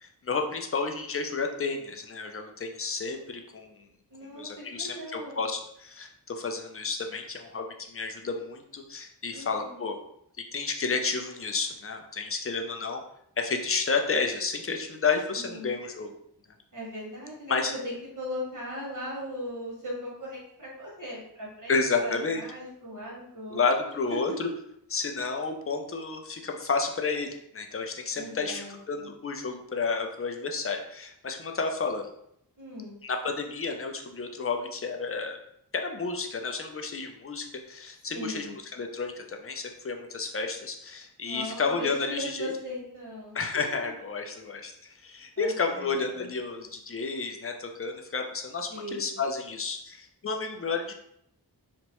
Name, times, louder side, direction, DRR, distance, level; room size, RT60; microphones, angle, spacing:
voice 1, 0.0-3.7 4.3-10.0 10.5-13.0 13.4-16.1 17.5-17.7 21.7-22.4 23.5-24.5 24.9-32.1 33.0-35.4 35.7-42.5 43.3-50.9, left 4 dB, 35° left, 4 dB, 0.5 m, -31 dB
voice 2, 4.1-5.5 9.3-9.8 15.3-15.8 16.7-23.7 28.2-29.1 32.6-33.0 38.1-38.6 41.3-43.4 45.4-46.3 48.7-49.1, left 1 dB, 50° right, -5 dB, 1.4 m, -39 dB
2.9 x 2.1 x 2.9 m, 0.73 s
cardioid pair, 40°, 41 cm